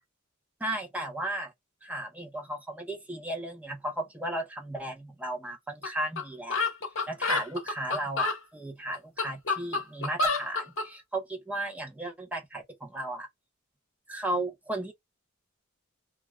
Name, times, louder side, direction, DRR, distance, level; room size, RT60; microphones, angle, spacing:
voice 1, 0.6-1.5 1.8-6.6 7.1-13.3 14.1-14.9, right 1 dB, 5° right, 0.6 m, -35 dB
sound 1, 5.8-5.9 6.2-6.3 6.5-8.4 8.9-10.9, left 3 dB, 65° left, 0.9 m, -28 dB
2.3 x 2.2 x 2.9 m
head